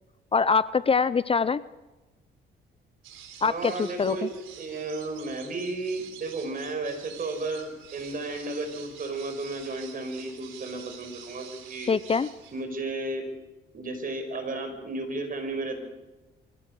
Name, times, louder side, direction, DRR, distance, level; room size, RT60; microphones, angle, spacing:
voice 1, 0.3-1.6 3.4-4.3 11.9-12.3, left 5 dB, 30° left, 17 dB, 0.6 m, -24 dB
sound 1, 3.0-12.6, right 8 dB, 85° right, 3.6 m, -48 dB
voice 2, 3.4-4.3 4.6-11.9 12.5-13.3 13.7-15.8, right 2 dB, 45° right, 6 dB, 5.5 m, -33 dB
23.5 x 16.5 x 6.8 m, 1.1 s
cardioid pair, 90°, 20 cm